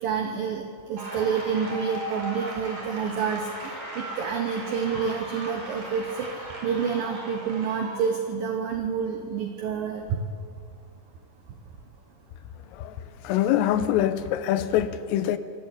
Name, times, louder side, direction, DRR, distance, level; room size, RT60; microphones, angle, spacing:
voice 1, 0.0-6.3 6.6-10.2, right 6 dB, 85° right, 2.0 m, -28 dB
sound 1, 1.0-8.2, right 1 dB, 40° right, 5.8 m, -37 dB
voice 2, 13.3-15.4, left 11 dB, 85° left, 3.4 m, -24 dB
24.5 x 14.0 x 8.2 m
omnidirectional pair, 5.9 m